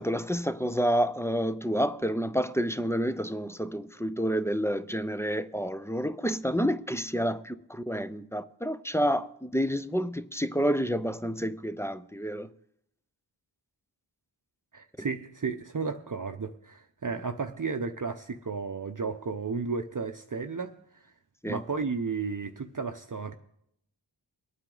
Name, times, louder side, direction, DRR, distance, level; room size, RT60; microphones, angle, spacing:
voice 1, 0.0-12.5 15.0-15.1 21.4-21.7, equal, 5° left, 0.5 m, -29 dB
voice 2, 14.7-20.7 21.5-23.3, right 4 dB, 40° right, 0.7 m, -33 dB
22.5 x 8.9 x 3.9 m
wide cardioid pair, 50°, 47 cm